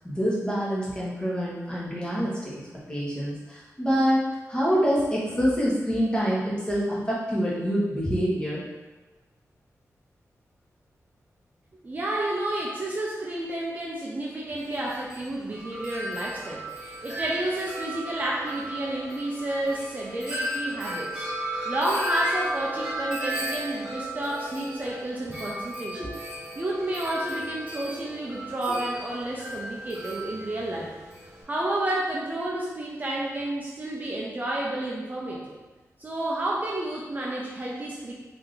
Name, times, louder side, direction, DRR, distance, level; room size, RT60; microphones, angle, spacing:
voice 1, 0.0-2.5 2.9-8.6 26.0-26.1 28.7-28.8, equal, 15° left, -7 dB, 1.2 m, -26 dB
voice 2, 11.8-21.3 21.6-26.1 26.6-30.9 31.5-35.5 36.0-38.1, right 1 dB, 30° right, -4 dB, 0.6 m, -30 dB
Wind chime, 14.6-31.4, right 1 dB, 10° right, 1.3 m, -35 dB
3.3 x 2.8 x 3.9 m, 1.2 s
wide cardioid pair, 135°, 6 cm